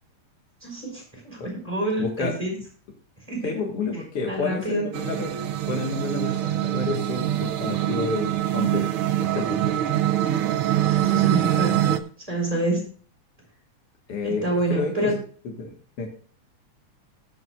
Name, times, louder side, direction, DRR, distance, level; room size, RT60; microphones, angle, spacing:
voice 1, 0.6-2.6 3.3-3.5 4.3-4.8 10.9-12.0 12.3-12.8 14.2-15.1, right 1 dB, 10° right, -1 dB, 5.2 m, -27 dB
voice 2, 2.0-2.4 3.4-5.4 5.7-8.9 9.2-9.7 14.1-15.1 15.4-16.1, left 3 dB, 55° left, 0 dB, 2.5 m, -30 dB
sound 1, 4.9-12.0, right 12 dB, 70° right, 1.4 m, -24 dB
21.0 x 7.8 x 2.5 m, 0.42 s
omnidirectional pair, 3.4 m